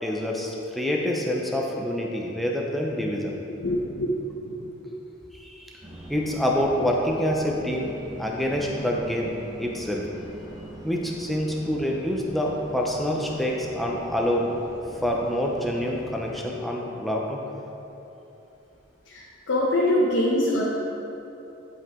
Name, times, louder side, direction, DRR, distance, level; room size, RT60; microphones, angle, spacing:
voice 1, 0.0-3.3 5.4-5.7 6.1-7.9 8.2-10.1 10.8-14.5 15.0-17.4, equal, ahead, -2 dB, 0.7 m, -26 dB
voice 2, 3.6-4.1 4.4-4.8 19.0-20.6, left 1 dB, 80° left, -6 dB, 1.1 m, -24 dB
sound 1, 5.8-16.3, right 1 dB, 20° right, 0.9 m, -43 dB
11.0 x 4.8 x 3.7 m, 3.0 s
head